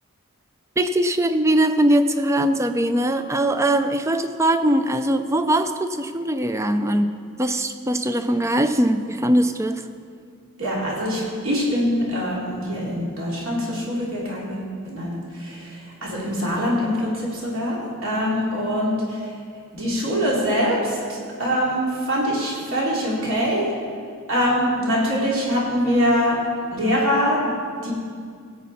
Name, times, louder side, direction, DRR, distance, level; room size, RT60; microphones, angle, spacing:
voice 1, 0.8-7.1 7.4-9.8, right 1 dB, 15° right, 9 dB, 0.4 m, -21 dB
voice 2, 10.6-19.2 19.7-23.7 24.3-26.4 26.7-27.5 27.8-27.9, equal, 65° right, -5 dB, 3.2 m, -23 dB
16.5 x 8.3 x 4.2 m, 2.2 s
head